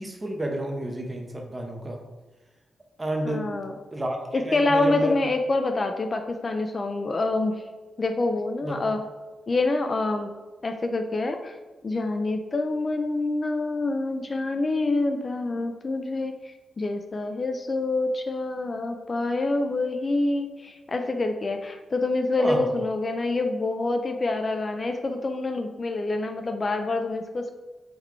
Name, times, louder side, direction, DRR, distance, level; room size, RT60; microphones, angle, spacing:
voice 1, 0.0-2.0 3.0-3.6 3.9-5.1 8.6-8.9 22.4-22.7, right 1 dB, 20° right, 2 dB, 0.7 m, -31 dB
voice 2, 3.2-3.7 4.3-7.6 8.0-9.0 9.5-10.3 10.6-11.6 11.8-27.5, left 2 dB, 35° left, 6 dB, 0.3 m, -26 dB
3.6 x 3.5 x 3.2 m, 1.2 s
cardioid pair, 100°, 0 cm